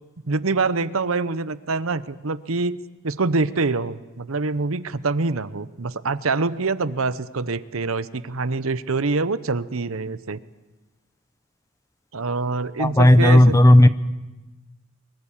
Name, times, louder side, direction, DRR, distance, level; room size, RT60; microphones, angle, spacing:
voice 1, 0.3-2.8 3.0-10.4 12.1-13.9, right 3 dB, 75° right, 15 dB, 0.9 m, -25 dB
voice 2, 12.8-13.9, left 1 dB, 15° left, 13 dB, 0.7 m, -12 dB
23.5 x 22.5 x 7.3 m, 1.1 s
head